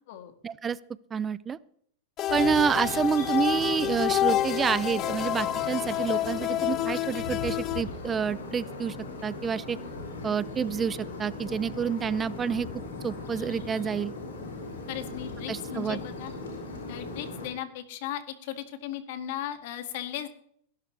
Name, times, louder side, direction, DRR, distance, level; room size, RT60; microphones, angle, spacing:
voice 1, 0.4-0.8 1.1-1.6 2.3-9.0 9.2-9.8 10.2-12.7 13.0-14.1 15.5-16.0, right 6 dB, 20° right, 19 dB, 0.5 m, -28 dB
sound 1, 2.2-7.8, left 13 dB, 40° left, 0.5 m, -28 dB
sound 2, 2.3-17.5, left 3 dB, 90° left, 6.2 m, -39 dB
voice 2, 14.9-16.3 16.9-20.3, left 11 dB, 60° left, 7 dB, 2.1 m, -37 dB
20.0 x 11.5 x 3.4 m, 0.67 s
hypercardioid pair, 110°, 0 cm